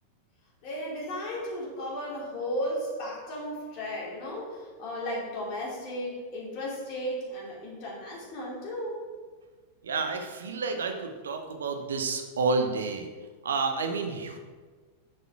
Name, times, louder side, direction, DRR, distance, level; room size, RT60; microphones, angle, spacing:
voice 1, 0.6-9.0, equal, 40° left, -5 dB, 2.9 m, -35 dB
voice 2, 9.8-13.1 13.4-14.4, right 4 dB, 65° right, 6 dB, 1.1 m, -30 dB
8.1 x 7.0 x 4.7 m, 1.4 s
figure-of-eight pair, 90°, 0 cm